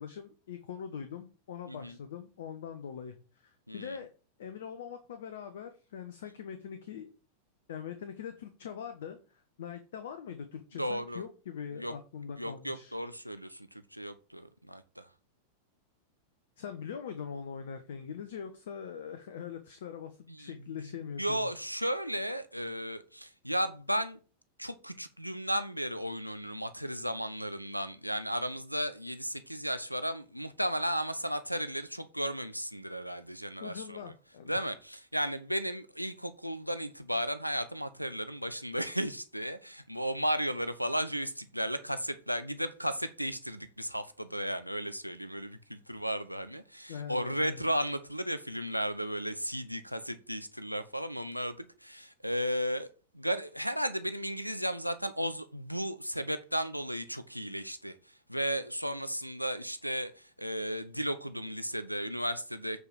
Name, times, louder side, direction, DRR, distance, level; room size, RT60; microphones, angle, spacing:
voice 1, 0.0-4.1 4.4-7.1 7.7-13.0 16.6-21.5 33.6-34.6 46.9-47.6, left 7 dB, 60° left, 1.0 m, -42 dB
voice 2, 1.7-2.0 3.7-4.0 10.8-11.2 11.8-11.9 12.4-15.1 20.4-20.5 21.2-24.2 24.6-34.0 34.5-52.9 53.1-57.9 58.3-62.8, equal, 90° right, 0.7 m, -34 dB
8.0 x 5.0 x 7.5 m
figure-of-eight pair, 90°, 0 cm